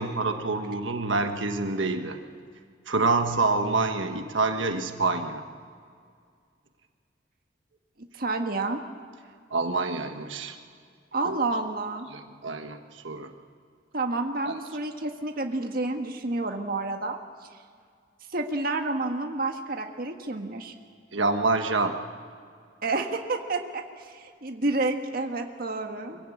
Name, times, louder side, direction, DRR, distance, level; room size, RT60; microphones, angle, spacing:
voice 1, 0.0-2.2 2.9-5.4 9.5-10.6 11.2-11.4 12.1-13.3 14.4-14.6 21.1-22.0, right 3 dB, 90° right, 6 dB, 1.4 m, -27 dB
voice 2, 8.2-8.8 11.1-12.1 13.9-17.2 18.3-20.7 22.8-26.2, right 2 dB, 50° right, 4 dB, 1.6 m, -29 dB
24.0 x 16.0 x 8.7 m, 2.2 s
head